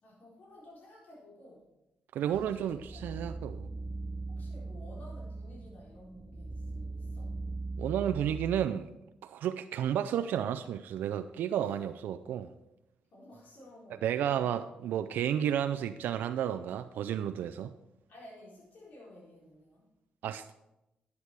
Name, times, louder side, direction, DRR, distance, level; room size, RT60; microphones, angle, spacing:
voice 1, 0.0-1.7 2.3-3.5 4.3-7.3 13.1-14.5 18.1-19.9, left 1 dB, 65° left, 4.3 m, -54 dB
voice 2, 2.1-3.7 7.8-8.9 9.2-12.5 13.9-17.7 20.2-20.5, right 10 dB, 85° right, 0.4 m, -32 dB
sound 1, 2.3-8.7, right 3 dB, 15° right, 0.3 m, -40 dB
11.5 x 8.2 x 4.7 m
cardioid pair, 75°, 3 cm